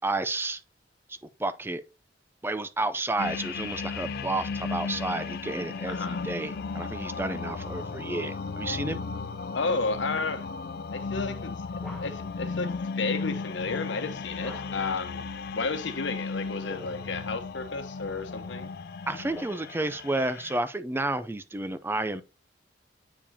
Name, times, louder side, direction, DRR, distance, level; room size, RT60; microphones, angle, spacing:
voice 1, 0.0-0.6 1.1-1.8 2.4-9.0 19.1-22.2, right 2 dB, 10° right, 0.4 m, -31 dB
sound 1, 3.2-20.6, left 4 dB, 55° left, 0.4 m, -35 dB
voice 2, 5.9-6.2 9.5-10.5 10.9-15.2 15.5-18.7, left 4 dB, 85° left, 1.0 m, -32 dB
sound 2, 11.7-12.4 14.4-15.0 16.4-17.2 18.0-19.9, left 1 dB, 5° left, 1.2 m, -48 dB
8.7 x 4.9 x 2.8 m
head